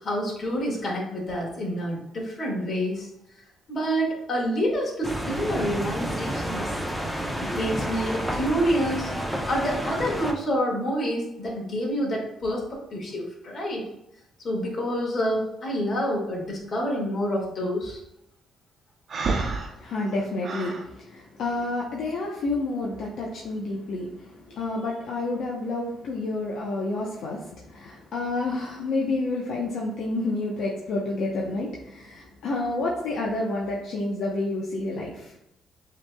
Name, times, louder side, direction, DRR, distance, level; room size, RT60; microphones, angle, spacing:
voice 1, 0.0-3.1 3.7-6.7 7.4-9.1 9.4-13.9 14.4-18.0, equal, 45° left, -2 dB, 1.7 m, -28 dB
sound 1, 5.0-10.3, equal, ahead, 0.8 m, -30 dB
Breathing, 19.1-20.8, right 4 dB, 55° right, 0.8 m, -29 dB
voice 2, 19.7-35.4, left 2 dB, 75° left, -3 dB, 0.8 m, -29 dB
7.0 x 3.0 x 2.3 m, 0.83 s
cardioid pair, 90°, 0 cm